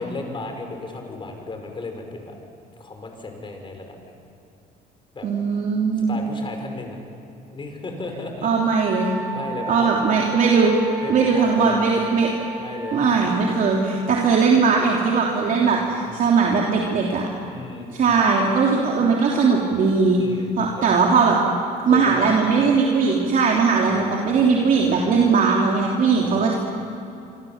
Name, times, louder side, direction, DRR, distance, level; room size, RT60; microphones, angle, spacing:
voice 1, 0.0-2.4 2.8-4.1 5.1-5.3 6.0-7.0 7.5-8.5 9.3-9.9 10.3-10.4 11.0-11.9 12.6-13.0 15.6-15.9 17.5-17.9 20.2-20.9 21.9-22.4 23.8-25.4 26.2-26.5, left 3 dB, 30° left, 4 dB, 5.4 m, -35 dB
voice 2, 5.2-6.2 8.4-9.1 9.7-10.7 11.1-12.3 12.9-17.3 17.9-20.2 20.6-21.4 21.8-26.5, right 5 dB, 55° right, -2 dB, 3.3 m, -19 dB
Wind instrument woodwind instrument, 8.8-14.4, right 4 dB, 10° right, 3.5 m, -34 dB
27.0 x 25.0 x 7.4 m, 2.7 s
cardioid pair, 110°, 17 cm